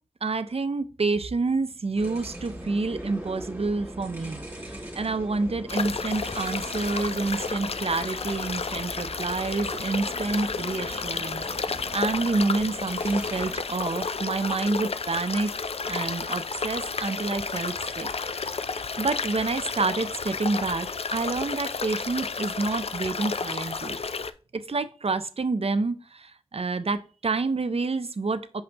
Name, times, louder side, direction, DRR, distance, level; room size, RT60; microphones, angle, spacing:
voice 1, 0.2-11.4 11.9-15.5 15.8-18.1 18.4-18.5 19.0-24.0 24.5-28.6, right 3 dB, 70° right, 12 dB, 0.5 m, -28 dB
sound 1, 2.0-13.6, right 1 dB, 15° right, 2.7 m, -41 dB
sound 2, 5.7-24.3, left 4 dB, 70° left, 0.4 m, -32 dB
6.4 x 5.2 x 2.9 m, 0.37 s
wide cardioid pair, 55°, 11 cm